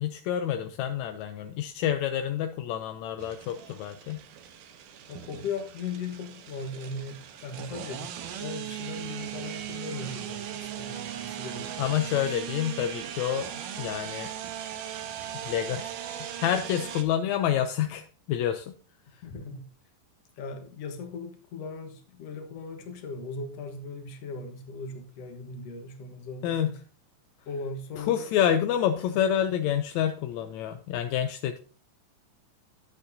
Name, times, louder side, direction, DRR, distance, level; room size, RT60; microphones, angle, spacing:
voice 1, 0.0-4.2 11.8-13.5 13.8-14.3 15.3-18.7 19.1-19.2 26.4-26.8 28.0-31.6, left 10 dB, 75° left, 7 dB, 1.7 m, -28 dB
sound 1, 3.2-17.0, right 10 dB, 80° right, 2.6 m, -38 dB
voice 2, 5.1-8.1 8.4-12.2 19.2-19.7 20.4-26.8 27.5-28.3, left 4 dB, 55° left, 5 dB, 2.1 m, -38 dB
13.0 x 8.1 x 2.7 m, 0.38 s
omnidirectional pair, 3.7 m